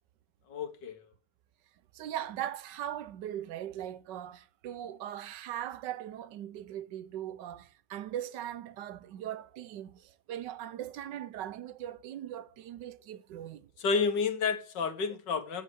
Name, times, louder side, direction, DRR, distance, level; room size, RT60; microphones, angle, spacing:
voice 1, 0.5-1.0 13.8-15.6, left 5 dB, 80° left, 2.0 m, -30 dB
voice 2, 1.9-13.7, right 11 dB, 90° right, 1.4 m, -40 dB
8.2 x 7.6 x 8.0 m
omnidirectional pair, 1.9 m